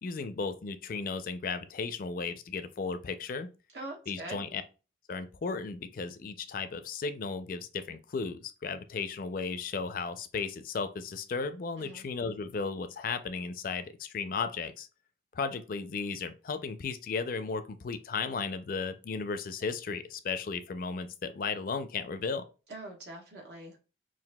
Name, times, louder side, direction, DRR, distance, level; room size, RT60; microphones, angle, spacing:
voice 1, 0.0-3.5 4.1-4.6 5.1-14.9 15.3-22.4, left 4 dB, 50° left, 0.4 m, -35 dB
voice 2, 3.7-4.4 11.8-12.0 22.7-23.8, right 2 dB, 65° right, 1.2 m, -43 dB
5.7 x 2.5 x 2.2 m
head